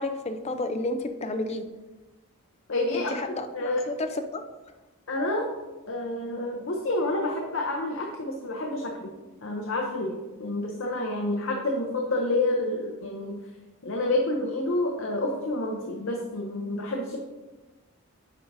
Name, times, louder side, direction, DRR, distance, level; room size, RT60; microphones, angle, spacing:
voice 1, 0.0-1.6 2.9-4.4, left 2 dB, 30° left, 7 dB, 0.4 m, -31 dB
voice 2, 2.7-3.2 3.5-3.9 5.1-5.5 5.9-9.1 9.4-13.4 13.8-17.2, left 2 dB, 60° left, 1 dB, 0.7 m, -28 dB
8.8 x 4.6 x 2.6 m, 1.1 s
head